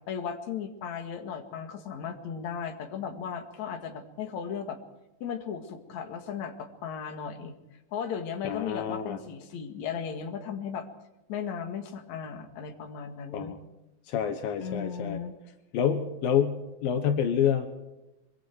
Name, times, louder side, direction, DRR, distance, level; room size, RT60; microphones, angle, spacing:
voice 1, 0.1-4.8 5.2-7.5 7.9-10.9 11.3-13.5 14.6-15.4, left 7 dB, 55° left, 5 dB, 3.1 m, -36 dB
voice 2, 8.4-9.2 13.3-13.6 14.1-15.2 15.7-17.7, left 8 dB, 80° left, 8 dB, 3.0 m, -28 dB
25.0 x 23.5 x 4.6 m, 0.98 s
omnidirectional pair, 4.1 m